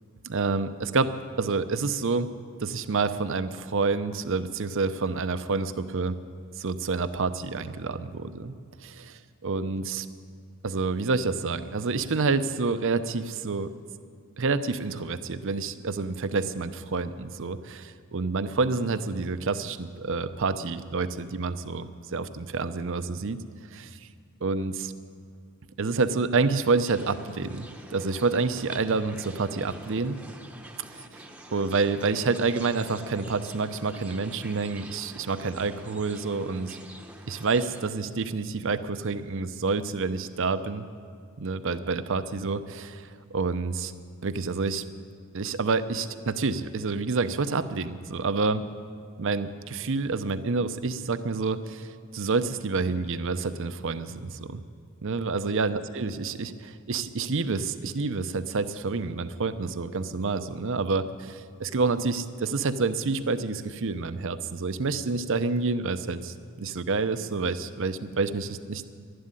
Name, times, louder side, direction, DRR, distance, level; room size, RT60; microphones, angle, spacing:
voice 1, 0.2-2.3 2.6-6.1 6.6-8.6 8.8-10.1 10.6-13.7 14.4-23.4 23.7-24.0 24.4-24.9 25.8-30.2 30.9-31.2 31.5-36.8 37.3-40.9 41.4-43.9 44.2-44.8 45.3-48.6 49.2-54.6 55.0-68.8, right 4 dB, 65° right, 12 dB, 0.7 m, -28 dB
sound 1, 26.9-37.8, right 1 dB, 5° right, 0.9 m, -46 dB
12.0 x 11.5 x 9.8 m, 2.2 s
head